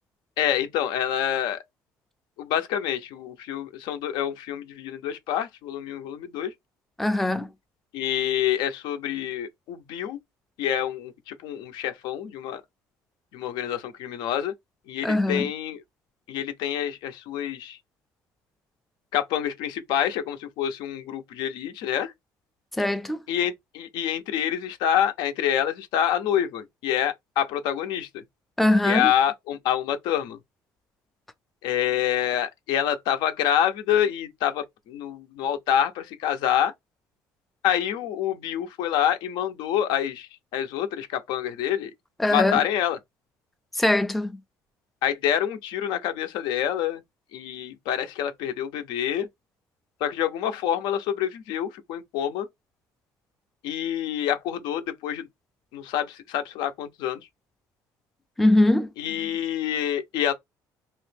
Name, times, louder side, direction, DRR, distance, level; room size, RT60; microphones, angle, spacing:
voice 1, 0.4-1.6 2.4-6.5 7.9-10.2 10.6-12.6 13.3-14.5 14.9-15.8 16.3-17.8 19.1-22.1 23.3-28.2 28.8-30.4 31.6-36.7 37.6-41.9 42.3-43.0 45.0-47.0 47.3-49.3 50.0-52.5 53.6-55.3 55.7-57.2 59.0-60.3, left 10 dB, 85° left, 0.6 m, -27 dB
voice 2, 7.0-7.5 15.0-15.5 22.8-23.2 28.6-29.1 42.2-42.6 43.7-44.4 58.4-58.9, left 1 dB, ahead, 0.3 m, -21 dB
2.9 x 2.5 x 3.4 m
cardioid pair, 130°, 7 cm